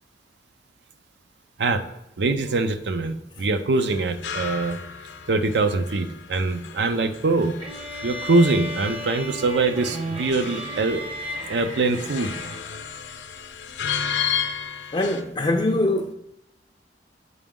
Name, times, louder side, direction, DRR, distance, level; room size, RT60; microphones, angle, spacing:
voice 1, 2.2-4.8 5.3-7.6 8.0-11.0 11.5-12.4, right 3 dB, 65° right, 0.5 m, -23 dB
sound 1, 3.9-15.2, left 8 dB, 70° left, 0.6 m, -34 dB
sound 2, 7.6-12.9, equal, 35° right, 0.9 m, -34 dB
voice 2, 14.9-16.1, left 1 dB, 25° left, 0.4 m, -23 dB
8.1 x 5.0 x 3.7 m
head